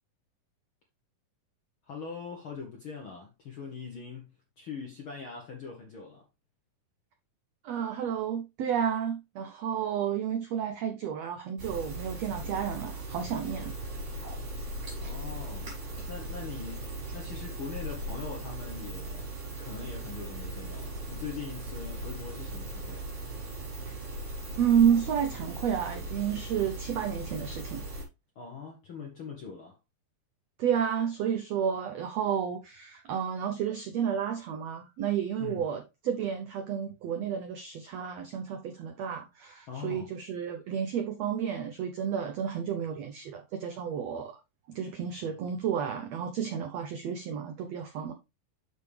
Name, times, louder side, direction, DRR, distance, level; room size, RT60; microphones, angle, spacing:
voice 1, 1.8-6.2 14.6-14.7 15.0-15.7 16.1-19.2 19.6-23.1 28.3-29.8 35.4-35.7 39.7-40.1, left 6 dB, 65° left, 1.2 m, -42 dB
voice 2, 7.6-13.7 23.9-24.0 24.6-27.9 30.6-44.4 44.7-48.1, right 8 dB, 85° right, 1.4 m, -31 dB
sound 1, 11.6-28.0, right 1 dB, 50° right, 5.3 m, -38 dB
7.5 x 6.4 x 3.3 m
omnidirectional pair, 4.1 m